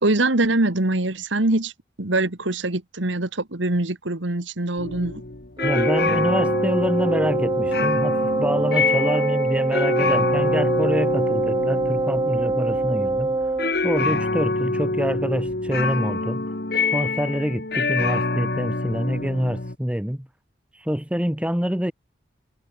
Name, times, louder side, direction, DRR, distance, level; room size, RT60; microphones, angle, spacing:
voice 1, 0.0-1.7 2.0-5.2, right 2 dB, 85° right, 2.0 m, -23 dB
sound 1, 4.8-19.7, left 3 dB, 55° left, 1.6 m, -26 dB
voice 2, 5.6-13.4 13.8-16.5 16.9-20.3 20.7-21.9, equal, 5° right, 1.0 m, -26 dB
Wind instrument woodwind instrument, 5.6-13.8, right 2 dB, 20° right, 0.3 m, -24 dB
head